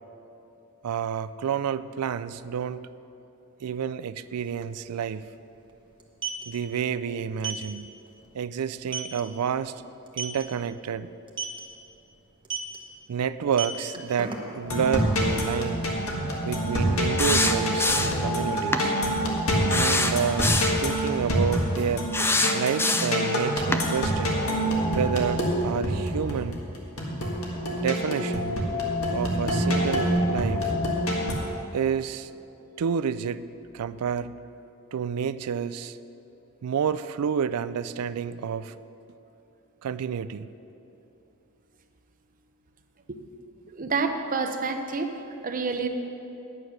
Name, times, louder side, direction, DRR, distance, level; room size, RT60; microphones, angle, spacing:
voice 1, 0.8-2.9 3.6-5.3 6.5-7.9 8.3-9.8 10.1-11.1 13.1-15.9 16.4-19.0 19.7-20.5 20.8-22.1 22.5-24.4 24.9-26.6 27.7-28.6 29.1-30.7 31.7-32.3 32.8-33.4 33.7-34.3 34.9-36.0 36.6-38.7 39.8-40.5, right 7 dB, 85° right, 14 dB, 0.4 m, -29 dB
sound 1, 4.4-4.5 4.7-4.9 5.9-6.4 7.4-7.6 8.1-8.2 8.6-8.7 8.9-9.2 10.1-10.4 11.3-11.6 12.4-12.8 13.4-14.7, right 6 dB, 20° right, 1.1 m, -32 dB
sound 2, 14.6-31.3, equal, 70° left, 1.8 m, -26 dB
sound 3, 17.2-18.3 18.7-18.9 19.7-20.8 22.1-23.2 23.7-23.9, left 2 dB, 10° left, 0.5 m, -24 dB
voice 2, 43.7-45.1 45.4-45.9, right 4 dB, 40° right, 6 dB, 0.8 m, -28 dB
9.8 x 9.1 x 6.3 m, 2.9 s
head